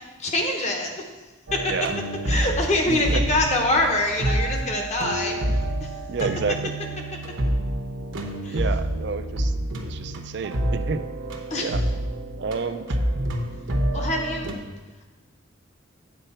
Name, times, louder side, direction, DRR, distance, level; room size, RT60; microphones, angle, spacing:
voice 1, 0.2-0.9 1.5-1.7 2.3-5.4 5.8-5.9 8.4-8.6 11.5-11.7 13.9-14.5, left 1 dB, 35° left, 2 dB, 1.0 m, -24 dB
sound 1, 1.5-14.5, right 1 dB, 75° right, 0.9 m, -28 dB
voice 2, 2.9-3.2 6.1-6.7 8.5-9.5 9.8-11.0 11.6-11.8 12.4-13.0, right 5 dB, 55° right, 10 dB, 0.4 m, -29 dB
8.3 x 4.5 x 5.6 m, 1.2 s
head